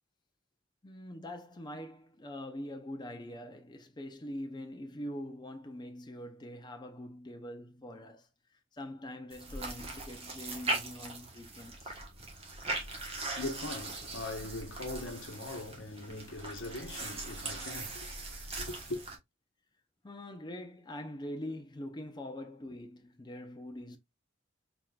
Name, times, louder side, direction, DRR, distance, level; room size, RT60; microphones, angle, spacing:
voice 1, 0.8-8.3 8.7-11.9 20.0-24.0, left 1 dB, 25° left, 0.6 m, -43 dB
sound 1, 9.3-19.2, right 3 dB, 30° right, 1.2 m, -40 dB
voice 2, 12.7-19.1, left 2 dB, 85° left, 1.0 m, -41 dB
4.5 x 3.7 x 2.3 m
head